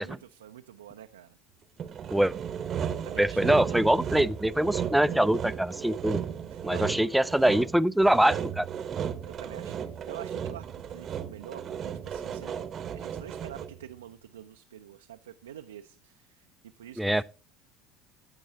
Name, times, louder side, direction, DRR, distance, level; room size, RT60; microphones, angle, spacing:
voice 1, 0.0-1.4 3.0-3.8 6.5-7.1 9.2-12.5 12.9-16.5 16.7-17.2, right 11 dB, 80° right, 0.3 m, -46 dB
Sawing, 1.8-13.8, right 8 dB, 40° right, 0.7 m, -34 dB
voice 2, 3.2-6.2 6.6-8.7 17.0-17.2, right 1 dB, 5° right, 0.3 m, -24 dB
15.0 x 5.3 x 2.8 m
figure-of-eight pair, 70°, 0 cm